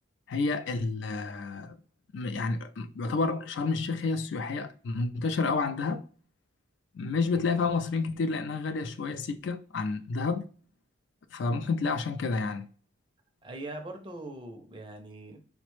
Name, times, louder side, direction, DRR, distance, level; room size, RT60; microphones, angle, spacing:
voice 1, 0.3-1.8 2.1-6.0 6.9-10.4 11.3-12.7, left 4 dB, 65° left, 0.3 m, -30 dB
voice 2, 13.4-15.4, right 2 dB, 25° right, 0.5 m, -41 dB
4.0 x 2.1 x 3.0 m
head